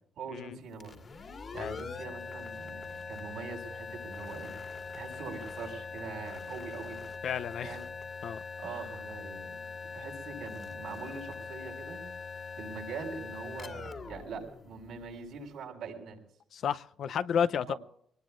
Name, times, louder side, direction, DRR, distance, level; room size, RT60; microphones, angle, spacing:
voice 1, 0.2-1.0 1.5-4.5 4.9-7.0 7.6-7.9 8.6-9.6 9.9-12.0 12.6-16.2 17.7-17.8, right 5 dB, 75° right, 1 dB, 7.0 m, -43 dB
sound 1, 0.7-15.3, left 5 dB, 45° left, 2.1 m, -42 dB
voice 2, 7.2-7.8 8.2-8.4 16.5-17.7, left 8 dB, 65° left, 13 dB, 0.6 m, -31 dB
24.5 x 19.5 x 2.5 m, 0.67 s
cardioid pair, 90°, 0 cm